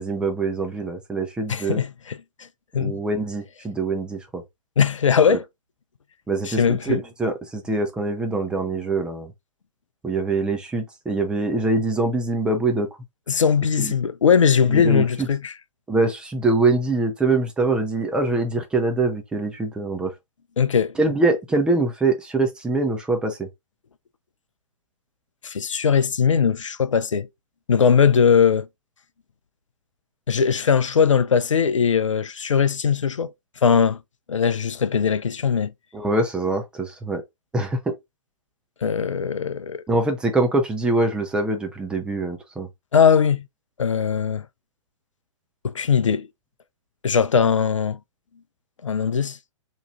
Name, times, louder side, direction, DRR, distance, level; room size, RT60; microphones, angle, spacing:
voice 1, 0.0-1.8 2.8-4.4 5.3-5.4 6.3-9.3 10.0-12.9 13.8-13.9 14.7-15.3 15.9-20.1 21.0-23.5 35.9-37.2 37.5-37.9 39.9-42.7, right 2 dB, 5° right, 0.4 m, -24 dB
voice 2, 1.5-2.2 2.7-3.0 4.8-5.4 6.4-7.0 13.3-15.5 20.6-20.9 25.4-27.3 27.7-28.7 30.3-33.3 33.6-34.0 34.3-35.7 38.8-39.8 42.9-43.5 43.8-44.5 45.6-46.3 47.0-48.0 48.8-49.4, left 6 dB, 70° left, 0.5 m, -20 dB
3.0 x 2.3 x 4.2 m
figure-of-eight pair, 120°, 17 cm